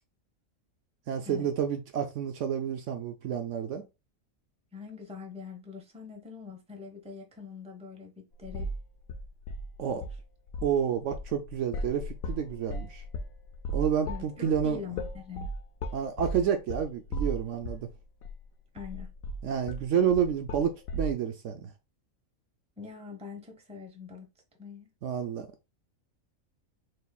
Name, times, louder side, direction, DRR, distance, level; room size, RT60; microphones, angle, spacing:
voice 1, 1.1-3.9 9.8-10.0 10.6-13.0 13.7-14.8 15.9-17.9 19.4-21.7 25.0-25.5, right 8 dB, 70° right, 0.9 m, -29 dB
voice 2, 4.7-8.7 9.9-10.1 14.1-15.5 18.7-19.1 22.8-24.3 24.6-24.9, left 5 dB, 5° right, 0.7 m, -43 dB
sound 1, 8.4-8.8 9.1-10.2 10.5-10.8 11.1-17.9 18.2-18.3 18.8-21.1, equal, 80° left, 1.0 m, -36 dB
6.5 x 2.7 x 2.3 m
omnidirectional pair, 1.4 m